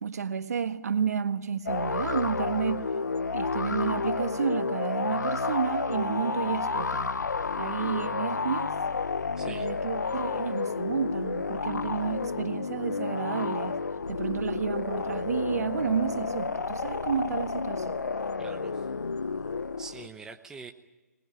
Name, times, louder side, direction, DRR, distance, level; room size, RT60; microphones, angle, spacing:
voice 1, 0.0-2.8 3.3-7.1 7.6-8.7 9.4-13.8 14.1-18.0, right 7 dB, 65° right, 1.6 m, -31 dB
sound 1, 1.7-20.1, left 4 dB, 85° left, 0.9 m, -31 dB
voice 2, 9.4-9.7 18.4-18.9 19.8-20.7, right 4 dB, 5° right, 1.0 m, -44 dB
23.5 x 20.5 x 9.6 m
hypercardioid pair, 150°, 9 cm